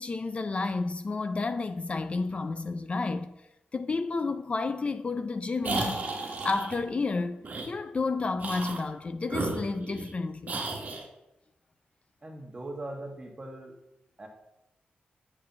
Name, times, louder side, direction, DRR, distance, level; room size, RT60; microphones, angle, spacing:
voice 1, 0.0-3.3 3.7-7.4 7.7-10.6, left 3 dB, 35° left, 0.4 m, -31 dB
sound 1, 5.6-6.8 7.4-7.7 8.4-8.9 9.3-10.1 10.5-11.0, right 3 dB, 50° right, 1.6 m, -33 dB
voice 2, 12.2-13.7 14.2-14.3, right 1 dB, 25° right, 1.7 m, -40 dB
7.5 x 5.0 x 7.3 m
wide cardioid pair, 115°, 3 cm